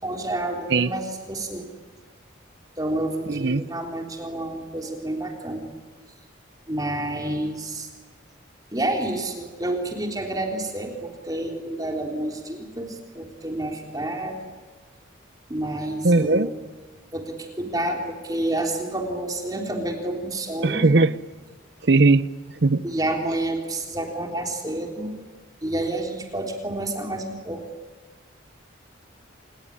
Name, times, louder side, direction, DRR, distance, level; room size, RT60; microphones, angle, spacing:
voice 1, 0.0-1.7 2.8-5.7 6.7-7.9 8.7-14.5 15.5-16.6 17.1-20.9 22.8-25.1 25.6-27.6, right 1 dB, 20° right, 2 dB, 3.5 m, -29 dB
voice 2, 3.3-3.6 16.0-16.5 20.6-21.1 21.8-22.3 22.6-22.8, right 3 dB, 55° right, 17 dB, 0.7 m, -18 dB
27.5 x 20.0 x 9.9 m, 1.4 s
head